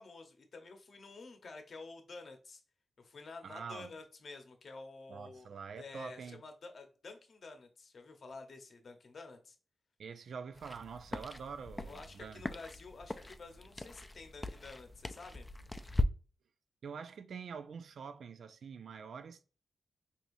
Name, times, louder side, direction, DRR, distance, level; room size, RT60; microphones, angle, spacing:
voice 1, 0.0-2.6 3.0-5.5 5.8-9.6 11.8-15.5, left 3 dB, 60° left, 0.8 m, -50 dB
voice 2, 3.4-3.9 5.1-6.4 10.0-12.4 16.8-19.4, right 6 dB, 75° right, 0.4 m, -46 dB
sound 1, 10.6-16.1, left 1 dB, 20° left, 0.4 m, -39 dB
4.7 x 2.8 x 2.6 m
cardioid pair, 60°, 0 cm